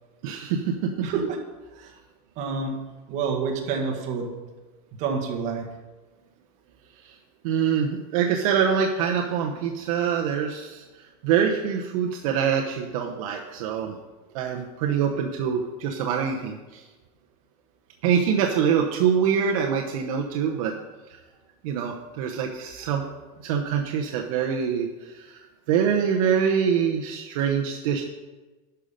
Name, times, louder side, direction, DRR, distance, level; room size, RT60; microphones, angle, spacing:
voice 1, 0.2-0.9 7.0-7.2 7.4-10.8 11.2-13.9 14.3-16.8 18.0-20.7 21.6-23.1 23.4-25.4 25.7-28.0, right 7 dB, 65° right, 1 dB, 0.9 m, -24 dB
voice 2, 1.0-1.4 1.7-1.9 2.3-2.8 3.1-4.3 5.0-5.6, right 5 dB, 40° right, 1 dB, 1.6 m, -28 dB
11.5 x 5.7 x 5.2 m, 1.2 s
supercardioid pair, 170°, 19 cm